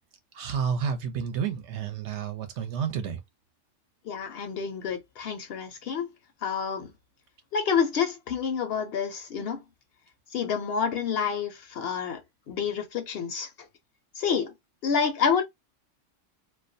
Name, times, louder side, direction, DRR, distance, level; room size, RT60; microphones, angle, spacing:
voice 1, 0.3-3.2, right 7 dB, 70° right, 0.8 m, -30 dB
voice 2, 4.1-6.1 6.4-6.9 7.5-9.6 10.3-12.2 12.5-13.5 14.2-14.5 14.8-15.4, left 6 dB, 65° left, 0.7 m, -28 dB
2.3 x 2.1 x 2.5 m
omnidirectional pair, 1.3 m